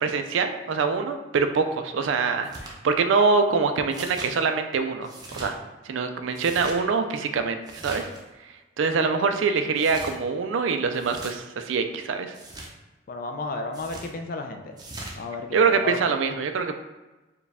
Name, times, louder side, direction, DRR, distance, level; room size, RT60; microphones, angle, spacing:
voice 1, 0.0-5.5 5.8-8.1 8.8-12.3 15.5-16.8, right 5 dB, 75° right, 7 dB, 0.4 m, -24 dB
sound 1, 2.4-2.8 3.9-4.4 5.0-5.5 6.3-6.8 7.7-8.2 9.8-10.2 10.9-11.3 12.3-12.7 13.7-14.1 14.8-15.2, right 2 dB, 20° right, 0.5 m, -39 dB
voice 2, 13.1-14.8 15.2-16.0, left 3 dB, 45° left, 5 dB, 0.4 m, -33 dB
4.6 x 2.3 x 3.4 m, 1.1 s
head